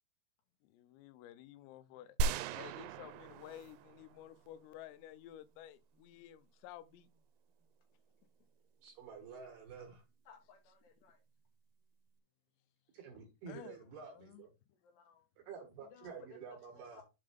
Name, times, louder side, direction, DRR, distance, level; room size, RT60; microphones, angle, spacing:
voice 1, 0.6-2.2 2.5-7.1 13.5-13.8 14.2-14.4, left 12 dB, 90° left, 3.3 m, -53 dB
sound 1, 2.2-4.5, right 2 dB, 90° right, 3.3 m, -39 dB
voice 2, 8.8-10.0 12.9-14.5 15.5-17.0, right 5 dB, 65° right, 2.9 m, -50 dB
voice 3, 10.3-11.2 14.8-15.2 15.8-17.0, left 6 dB, 70° left, 2.8 m, -61 dB
7.6 x 3.7 x 5.0 m
omnidirectional pair, 5.9 m